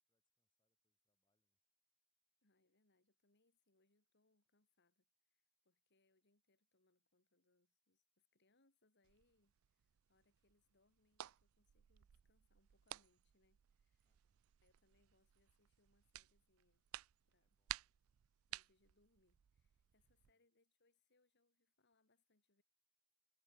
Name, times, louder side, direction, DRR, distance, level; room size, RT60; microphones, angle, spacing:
voice 1, 0.0-1.6 14.0-14.5 17.4-17.9 20.0-20.4, left 1 dB, 20° left, 5.4 m, -95 dB
voice 2, 2.4-14.2 14.6-16.9 17.3-17.6 18.5-22.6, left 2 dB, 50° left, 3.3 m, -81 dB
sound 1, 9.0-20.3, right 14 dB, 70° right, 0.4 m, -56 dB
head